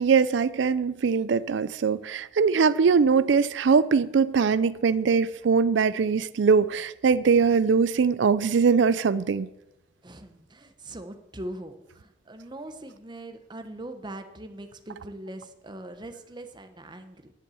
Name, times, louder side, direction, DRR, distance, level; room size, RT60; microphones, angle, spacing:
voice 1, 0.0-9.5, right 5 dB, 70° right, 0.4 m, -22 dB
voice 2, 10.0-17.3, right 1 dB, 25° right, 0.9 m, -41 dB
10.5 x 8.0 x 7.1 m
head